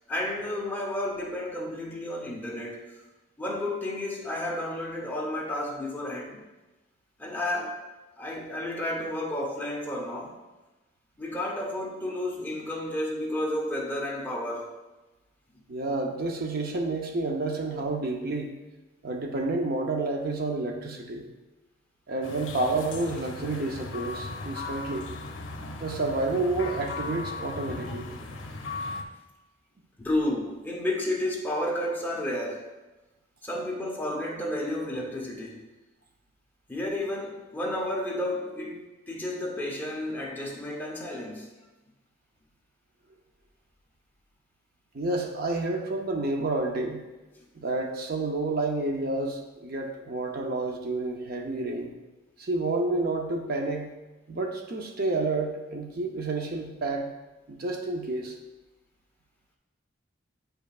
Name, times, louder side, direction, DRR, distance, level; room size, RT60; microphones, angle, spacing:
voice 1, 0.1-2.9 3.4-6.4 7.2-7.8 8.2-10.4 11.2-14.7 30.0-32.7 33.4-35.6 36.7-41.5 47.3-47.4, left 1 dB, 10° left, -2 dB, 0.9 m, -31 dB
voice 2, 15.7-18.5 19.0-21.3 22.1-25.0 25.8-28.1 44.9-47.0 47.6-51.9 52.4-53.9 54.3-57.1 57.5-58.4, right 2 dB, 50° right, 2 dB, 0.6 m, -29 dB
sound 1, 22.2-29.0, left 3 dB, 70° left, 0.7 m, -37 dB
8.8 x 5.2 x 2.4 m, 1.1 s
head